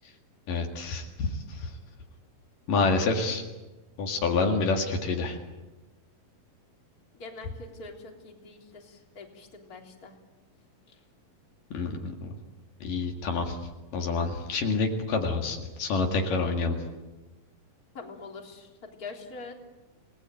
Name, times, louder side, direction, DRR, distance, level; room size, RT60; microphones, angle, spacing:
voice 1, 0.5-1.7 2.7-3.5 4.0-5.4 11.7-12.4 12.8-13.6 13.9-16.8, left 3 dB, 70° left, 3 dB, 3.6 m, -28 dB
voice 2, 7.1-10.2 10.9-11.0 17.9-19.5, left 3 dB, 25° left, 1 dB, 3.7 m, -44 dB
29.5 x 19.5 x 9.0 m, 1.1 s
omnidirectional pair, 4.0 m